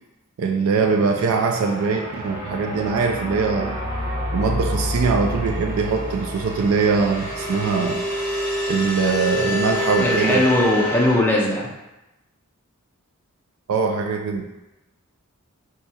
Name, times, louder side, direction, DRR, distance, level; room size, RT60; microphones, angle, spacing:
voice 1, 0.4-3.8 4.3-8.0 8.7-10.5 13.7-14.5, right 5 dB, 70° right, 5 dB, 0.3 m, -22 dB
sound 1, 0.7-11.2, left 1 dB, 20° right, 0.9 m, -27 dB
voice 2, 10.0-11.7, left 1 dB, 10° left, -3 dB, 0.4 m, -19 dB
2.8 x 2.3 x 4.0 m, 0.98 s
head